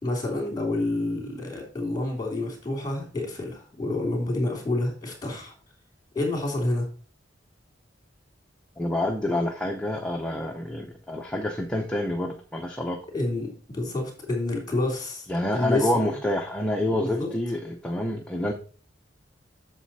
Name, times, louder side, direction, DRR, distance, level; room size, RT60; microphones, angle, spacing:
voice 1, 0.0-5.5 6.1-6.9 13.1-15.3 15.5-16.1 17.0-17.3, left 2 dB, 20° left, 2 dB, 3.2 m, -28 dB
voice 2, 8.8-13.0 15.3-18.5, left 1 dB, 5° left, 1 dB, 0.8 m, -27 dB
8.0 x 6.8 x 4.2 m, 0.39 s
head